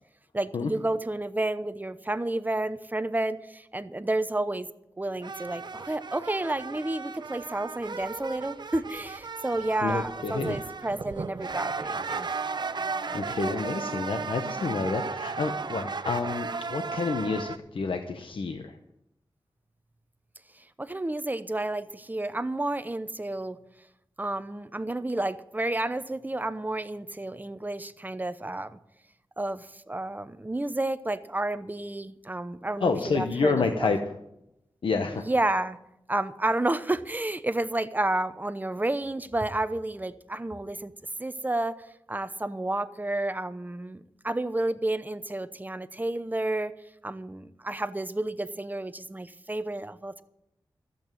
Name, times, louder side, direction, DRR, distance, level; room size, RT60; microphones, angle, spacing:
voice 1, 0.3-4.7 5.0-12.3 20.5-23.6 24.2-28.8 29.4-34.0 35.1-35.8 36.1-40.9 41.2-46.7 47.0-50.2, right 2 dB, 20° right, 12 dB, 0.8 m, -31 dB
sound 1, 5.2-17.6, right 4 dB, 60° right, 0.7 m, -35 dB
voice 2, 9.8-10.6 13.1-18.8 32.8-34.0 34.8-35.3, left 4 dB, 90° left, 6 dB, 1.0 m, -29 dB
14.0 x 8.2 x 9.0 m, 0.85 s
wide cardioid pair, 85°, 9 cm